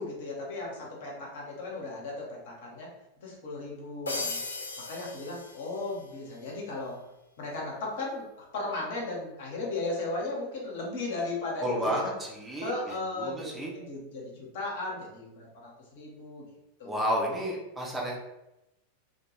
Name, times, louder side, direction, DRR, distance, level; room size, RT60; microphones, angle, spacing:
voice 1, 0.0-2.9 3.2-4.4 4.8-7.0 7.4-12.0 12.6-16.4 16.8-17.2, left 2 dB, 55° left, -2 dB, 0.8 m, -36 dB
sound 1, 4.1-6.1, left 3 dB, 75° left, 0.4 m, -37 dB
voice 2, 11.6-13.7 16.8-18.2, equal, 15° right, -2 dB, 0.6 m, -31 dB
2.2 x 2.2 x 3.0 m, 0.92 s
figure-of-eight pair, 90°, 0 cm